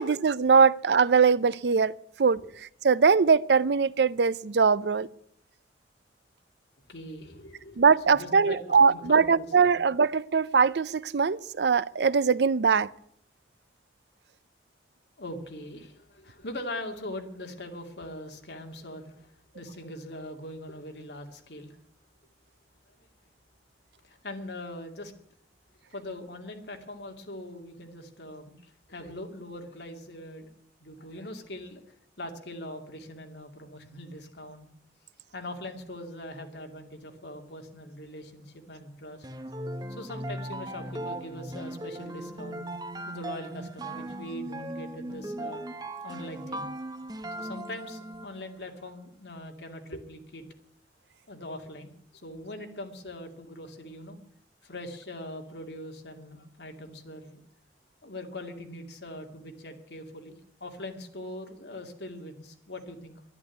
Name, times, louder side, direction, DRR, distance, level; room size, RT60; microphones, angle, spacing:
voice 1, 0.0-1.9 2.2-2.4 2.8-5.1 7.8-12.9, right 5 dB, 70° right, 0.5 m, -22 dB
voice 2, 6.9-9.8 15.2-21.8 23.0-23.1 24.0-25.1 25.9-30.5 30.8-31.8 32.2-34.7 35.3-39.3 39.9-42.7 43.0-45.6 46.0-46.7 47.4-50.4 51.3-54.2 54.6-57.4 58.0-63.2, left 1 dB, 70° left, 2.5 m, -41 dB
sound 1, 39.2-48.4, right 1 dB, 20° right, 1.0 m, -38 dB
11.5 x 11.0 x 9.4 m
head